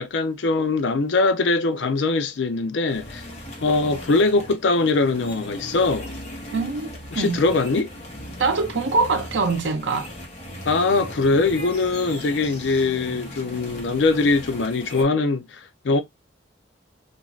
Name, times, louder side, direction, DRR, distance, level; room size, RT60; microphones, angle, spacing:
voice 1, 0.0-3.2 3.6-6.1 7.1-7.9 10.6-16.0, left 3 dB, 75° left, 0.5 m, -22 dB
sound 1, 2.9-15.0, equal, 35° left, 1.0 m, -38 dB
voice 2, 6.5-7.4 8.4-10.1, right 4 dB, 80° right, 0.6 m, -24 dB
2.5 x 2.4 x 3.0 m
head